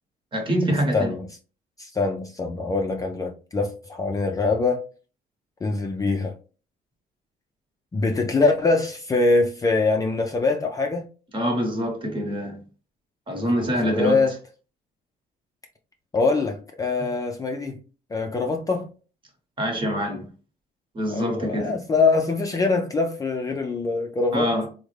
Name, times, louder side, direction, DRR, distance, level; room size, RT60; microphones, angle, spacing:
voice 1, 0.3-1.1 11.3-12.6 13.3-14.2 19.6-20.3 20.9-21.8 24.3-24.7, equal, 30° right, 1.1 m, -25 dB
voice 2, 0.9-1.3 1.8-4.8 5.6-6.4 7.9-11.1 13.3-14.4 16.1-17.8 18.1-18.9 21.1-24.5, left 3 dB, 20° left, 0.4 m, -23 dB
3.4 x 2.1 x 3.1 m
cardioid pair, 110°, 17 cm